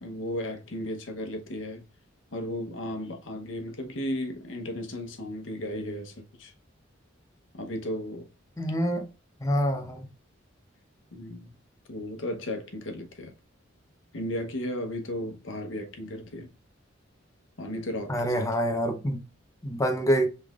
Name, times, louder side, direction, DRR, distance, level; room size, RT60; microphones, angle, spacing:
voice 1, 0.0-1.8 2.3-6.5 7.6-8.2 11.1-11.5 11.9-13.3 14.1-16.5 17.6-18.5, left 1 dB, 70° left, 1.0 m, -35 dB
voice 2, 8.6-9.1 9.4-10.1 18.1-19.3 19.6-20.3, equal, 15° left, 0.7 m, -26 dB
5.5 x 3.4 x 2.4 m
head